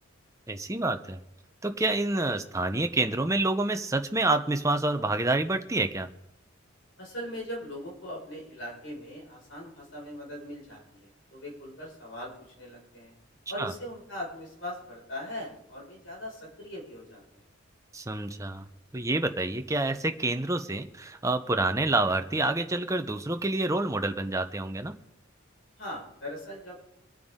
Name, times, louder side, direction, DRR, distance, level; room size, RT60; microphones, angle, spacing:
voice 1, 0.5-1.2 1.6-6.1 13.6-13.7 17.9-18.6 18.9-24.9, right 2 dB, 15° right, 7 dB, 0.7 m, -28 dB
voice 2, 7.0-13.1 13.5-17.4 25.8-26.8, equal, 60° left, -3 dB, 5.7 m, -40 dB
24.0 x 9.3 x 3.7 m, 0.81 s
head